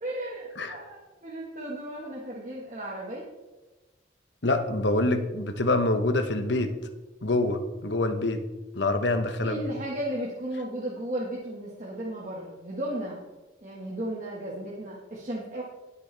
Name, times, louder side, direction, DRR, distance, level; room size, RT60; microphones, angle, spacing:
voice 1, 0.0-3.3 9.4-13.2 13.6-15.6, right 1 dB, 40° right, -4 dB, 1.6 m, -35 dB
voice 2, 4.4-6.7 7.2-8.4 8.7-9.7, left 2 dB, 75° left, 7 dB, 1.1 m, -26 dB
19.5 x 6.8 x 3.4 m, 1.1 s
head